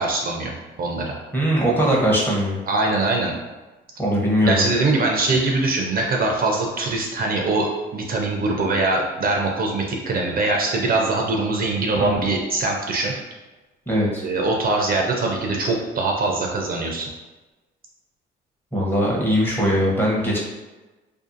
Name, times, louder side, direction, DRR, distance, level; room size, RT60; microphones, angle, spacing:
voice 1, 0.0-1.1 2.7-3.3 4.5-13.1 14.2-17.1, right 2 dB, 50° right, 0 dB, 0.5 m, -22 dB
voice 2, 1.3-2.6 4.0-4.7 12.0-12.1 13.9-14.2 18.7-20.4, equal, 10° left, -4 dB, 0.8 m, -20 dB
2.5 x 2.4 x 2.5 m, 1.1 s
cardioid pair, 90°, 20 cm